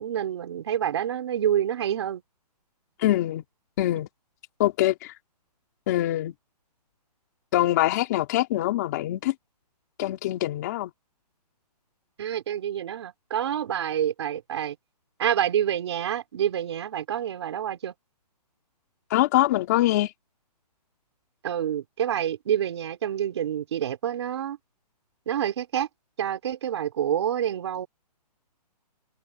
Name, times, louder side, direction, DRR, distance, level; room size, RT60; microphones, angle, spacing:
voice 1, 0.0-2.2 12.2-14.8 15.2-17.9 21.4-24.6 25.3-25.9 26.2-27.9, right 10 dB, 40° right, 3.4 m, -27 dB
voice 2, 3.0-3.4 3.8-4.1 4.6-5.1 5.9-6.3 7.5-9.3 10.0-10.9 19.1-20.1, left 15 dB, 25° left, 2.8 m, -24 dB
hypercardioid pair, 170°, 21 cm